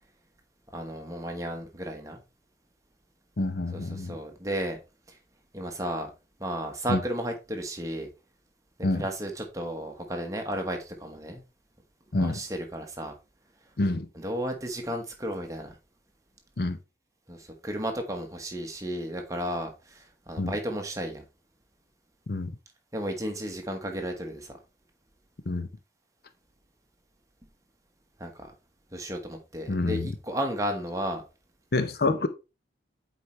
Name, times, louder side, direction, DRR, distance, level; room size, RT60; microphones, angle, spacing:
voice 1, 0.7-2.2 3.7-4.8 5.5-6.1 6.4-8.1 8.9-11.4 12.1-13.1 14.1-15.7 17.3-21.2 22.9-24.6 28.2-28.5 28.9-31.2, equal, 20° right, 1.1 m, -33 dB
voice 2, 3.4-4.1 6.9-7.0 8.8-9.1 12.1-12.4 13.8-14.1 16.6-16.8 20.4-20.5 22.3-22.5 25.5-25.7 29.7-30.1 31.7-32.3, left 2 dB, 55° left, 0.7 m, -27 dB
8.0 x 4.3 x 3.1 m
head